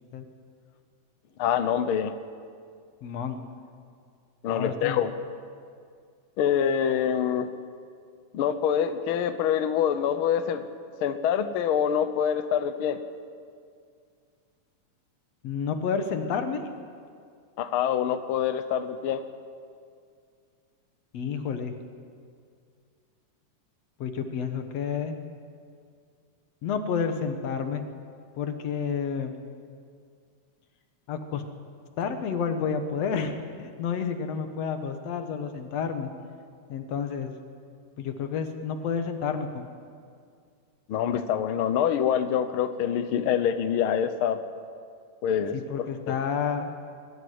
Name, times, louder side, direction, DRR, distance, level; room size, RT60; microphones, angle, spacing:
voice 1, 1.4-2.1 4.4-5.1 6.4-7.5 8.3-10.7 11.0-13.0 17.6-19.2 40.9-44.4 45.2-45.5 46.1-46.2, left 8 dB, 85° left, 10 dB, 1.1 m, -25 dB
voice 2, 3.0-3.4 4.5-5.0 15.4-16.7 21.1-21.7 24.0-25.2 26.6-27.8 28.3-29.3 31.1-31.4 32.0-36.1 36.7-37.3 38.0-39.7 45.5-46.7, left 6 dB, 60° left, 7 dB, 2.2 m, -30 dB
22.5 x 12.5 x 9.5 m, 2.2 s
omnidirectional pair, 3.7 m